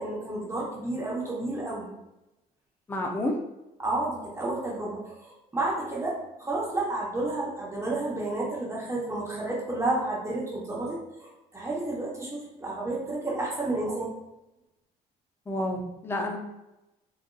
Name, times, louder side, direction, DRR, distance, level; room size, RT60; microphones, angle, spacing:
voice 1, 0.0-1.9 3.8-14.1, right 2 dB, 15° right, -4 dB, 0.9 m, -31 dB
voice 2, 2.9-3.4 15.5-16.4, left 1 dB, 15° left, 1 dB, 0.5 m, -29 dB
3.8 x 2.6 x 2.3 m, 0.93 s
cardioid pair, 110°, 17 cm